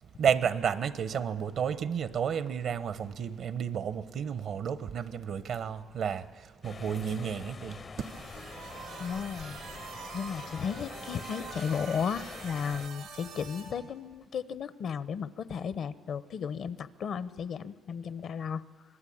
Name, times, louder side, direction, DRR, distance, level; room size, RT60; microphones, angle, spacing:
voice 1, 0.2-8.2 8.8-9.0, right 7 dB, 70° right, 1.0 m, -32 dB
sound 1, 6.6-12.9, left 5 dB, 40° left, 0.6 m, -45 dB
sound 2, 8.0-13.7, right 6 dB, 90° right, 5.2 m, -45 dB
voice 2, 9.0-18.6, left 7 dB, 65° left, 0.9 m, -35 dB
26.0 x 20.5 x 8.7 m
cardioid pair, 90°, 0 cm